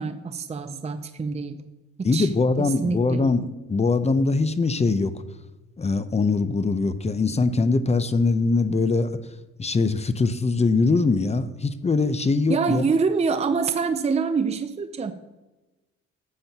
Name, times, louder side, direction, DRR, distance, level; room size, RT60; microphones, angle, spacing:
voice 1, 0.0-1.7 2.0-2.3 2.6-3.2 12.5-15.1, right 5 dB, 20° right, 9 dB, 0.6 m, -25 dB
voice 2, 2.0-5.1 5.8-9.1 9.6-12.8, left 3 dB, 20° left, 12 dB, 0.6 m, -22 dB
12.0 x 7.6 x 2.9 m, 1.1 s
cardioid pair, 90°, 30 cm